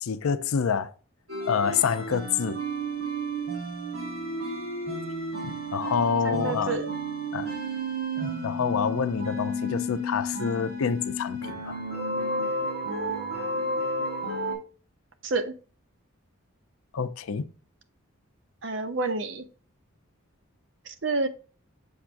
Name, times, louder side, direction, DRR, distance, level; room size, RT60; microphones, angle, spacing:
voice 1, 0.0-0.9 1.5-2.6 5.4-6.8 7.3-7.5 8.2-11.8 16.9-17.5, left 6 dB, 80° left, 0.5 m, -27 dB
sound 1, 1.3-14.5, right 1 dB, 85° right, 3.5 m, -32 dB
voice 2, 6.2-6.9 15.2-15.5 18.6-19.4 21.0-21.3, right 3 dB, 60° right, 0.7 m, -28 dB
7.1 x 5.8 x 2.5 m
head